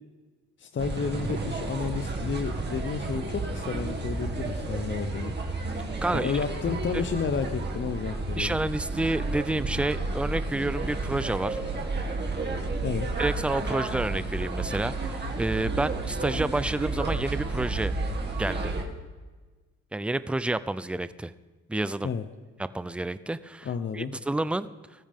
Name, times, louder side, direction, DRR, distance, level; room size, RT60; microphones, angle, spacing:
voice 1, 0.6-5.4 6.1-8.6 12.8-13.1 22.0-22.2 23.6-24.1, left 6 dB, 40° left, 7 dB, 0.8 m, -31 dB
sound 1, 0.8-18.8, right 3 dB, 35° right, 2.2 m, -31 dB
voice 2, 6.0-6.3 8.4-11.6 13.2-17.9 18.4-18.7 19.9-21.3 21.7-22.1 22.6-23.7 23.9-24.7, right 2 dB, 5° right, 15 dB, 0.4 m, -29 dB
19.5 x 13.5 x 3.6 m, 1.3 s
cardioid pair, 90°, 30 cm